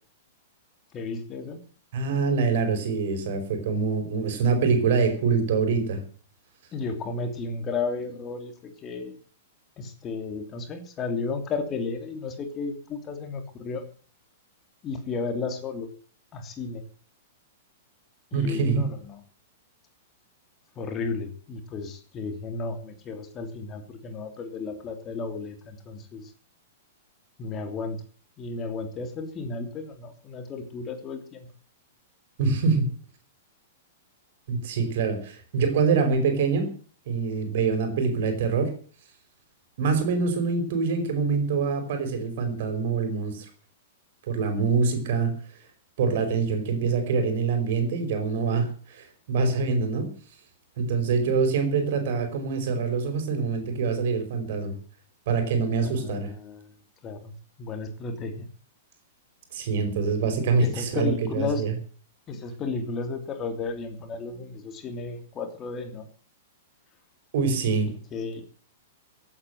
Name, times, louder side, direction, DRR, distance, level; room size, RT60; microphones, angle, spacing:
voice 1, 0.9-1.6 6.7-9.2 9.8-13.8 14.8-15.9 16.3-16.8 18.3-19.2 20.8-26.3 27.4-28.0 28.4-31.5 55.8-56.7 57.0-57.3 57.6-58.5 60.6-61.6 62.3-66.1 67.8-68.4, left 4 dB, 30° left, 7 dB, 2.9 m, -33 dB
voice 2, 1.9-6.0 18.3-18.9 32.4-32.9 34.5-36.7 37.0-38.7 39.8-43.5 44.3-45.3 46.0-50.1 50.8-54.7 55.3-56.3 59.5-61.7 67.3-67.9, right 5 dB, 55° right, 7 dB, 5.1 m, -25 dB
16.0 x 9.0 x 7.9 m, 0.43 s
figure-of-eight pair, 105°, 0 cm